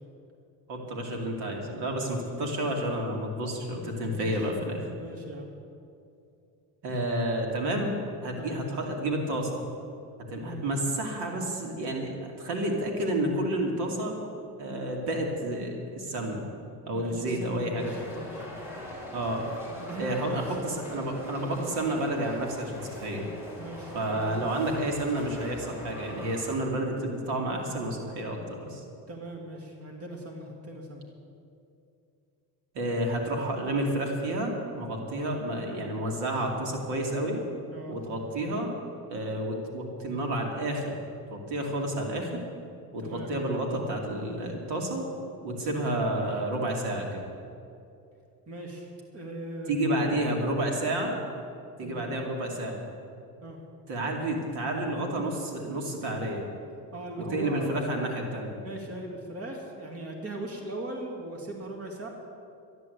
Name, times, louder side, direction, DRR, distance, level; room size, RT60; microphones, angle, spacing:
voice 1, 0.7-4.9 6.8-8.0 8.2-9.6 10.3-14.2 14.6-16.4 16.9-17.9 18.2-18.3 19.1-19.4 20.0-23.3 23.9-28.8 32.7-37.4 37.9-38.7 39.1-41.0 41.3-42.4 42.9-45.0 45.4-47.2 49.7-51.1 51.8-52.8 53.9-56.4 57.2-58.6, right 1 dB, 75° right, 0 dB, 2.7 m, -30 dB
voice 2, 4.0-4.5 5.0-5.5 8.4-8.6 10.4-10.6 16.9-18.4 19.8-20.4 23.6-24.0 24.4-24.7 29.1-31.0 37.7-38.0 43.0-43.3 48.5-50.2 50.5-50.6 51.8-52.1 53.4-53.6 56.9-57.8 58.6-62.1, right 1 dB, 35° right, 1 dB, 2.5 m, -39 dB
sound 1, 17.8-26.5, left 1 dB, 5° right, 3.8 m, -42 dB
13.0 x 11.0 x 8.1 m, 2.6 s
cardioid pair, 120°, 41 cm